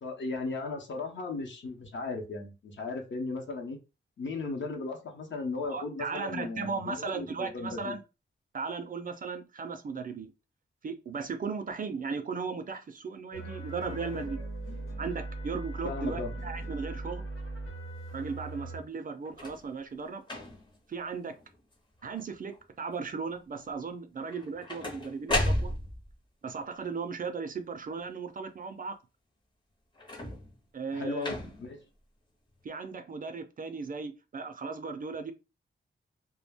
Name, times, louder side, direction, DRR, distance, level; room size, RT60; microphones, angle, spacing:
voice 1, 0.0-3.8 4.2-8.0 15.8-16.3 30.9-31.8, left 3 dB, 70° left, 0.7 m, -36 dB
voice 2, 5.6-8.0 8.5-10.3 10.8-14.4 15.0-17.2 18.1-20.2 20.9-21.4 22.0-25.7 26.4-29.0 30.7-31.3 32.6-35.3, right 5 dB, 45° right, 0.4 m, -36 dB
sound 1, 13.3-18.8, right 2 dB, 85° left, 1.0 m, -39 dB
sound 2, 19.3-19.7 20.2-20.8 21.4-21.7 22.0-22.6 24.3-26.1 30.0-30.6 31.2-31.8 32.6-32.7, left 1 dB, 25° left, 0.6 m, -34 dB
2.2 x 2.0 x 3.4 m
wide cardioid pair, 135°, 20 cm